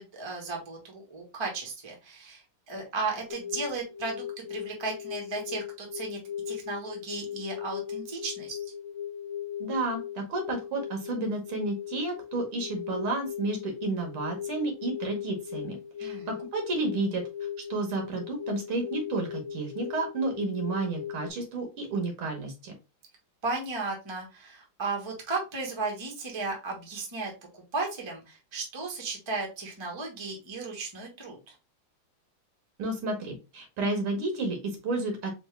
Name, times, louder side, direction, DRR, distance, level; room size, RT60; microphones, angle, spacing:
voice 1, 0.0-4.2 4.5-6.2 6.5-8.6 16.0-16.3 23.4-31.4, right 3 dB, 20° right, 0 dB, 0.8 m, -35 dB
sound 1, 3.3-21.3, left 9 dB, 70° left, 1.3 m, -38 dB
voice 2, 9.6-17.2 17.7-22.7 32.8-35.3, right 2 dB, 80° right, 3 dB, 2.1 m, -31 dB
4.3 x 2.7 x 3.2 m, 0.28 s
omnidirectional pair, 2.3 m